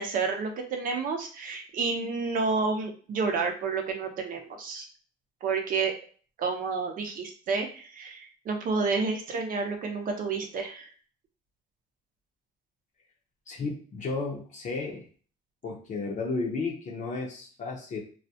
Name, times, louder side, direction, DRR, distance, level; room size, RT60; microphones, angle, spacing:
voice 1, 0.0-4.9 5.4-5.9 6.4-10.9, right 4 dB, 55° right, 4 dB, 0.6 m, -30 dB
voice 2, 13.5-15.0 15.6-18.0, left 3 dB, 45° left, -1 dB, 0.7 m, -33 dB
2.3 x 2.1 x 2.7 m, 0.41 s
cardioid pair, 110°, 17 cm